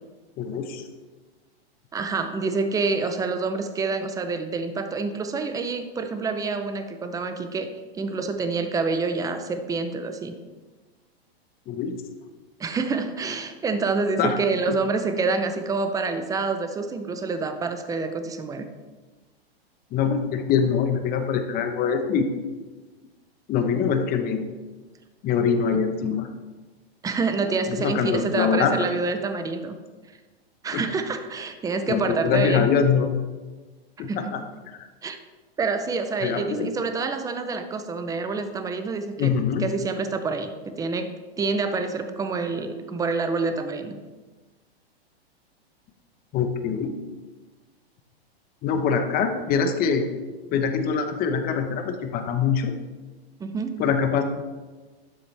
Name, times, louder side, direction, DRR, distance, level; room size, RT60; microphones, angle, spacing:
voice 1, 0.4-0.8 11.7-11.9 14.2-14.4 14.7-14.8 19.9-22.3 23.5-24.4 25.2-26.3 27.7-28.7 30.7-30.8 31.9-33.1 34.0-34.4 34.7-34.9 36.2-36.7 39.2-39.7 46.3-46.9 48.6-50.1 50.5-52.7 53.8-54.2, left 6 dB, 30° left, 6 dB, 1.0 m, -24 dB
voice 2, 1.9-10.3 12.6-18.7 27.0-29.7 30.6-32.7 34.1-34.3 35.0-35.2 35.6-39.3 39.6-41.1 41.4-44.0 53.4-53.8, right 4 dB, 10° right, 8 dB, 0.6 m, -27 dB
12.0 x 7.0 x 3.4 m, 1.3 s
hypercardioid pair, 130°, 31 cm